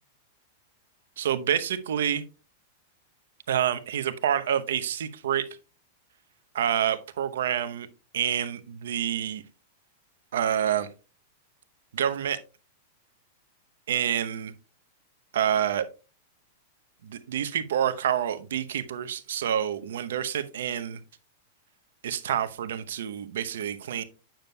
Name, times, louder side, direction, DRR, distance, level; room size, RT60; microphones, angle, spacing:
voice 1, 1.2-2.2 3.5-5.5 6.5-7.9 8.1-9.4 10.3-10.9 11.9-12.4 13.9-14.5 15.3-15.9 17.0-21.0 22.0-24.0, right 9 dB, 75° right, 11 dB, 0.8 m, -27 dB
8.9 x 6.9 x 2.3 m, 0.32 s
hypercardioid pair, 110°, 0 cm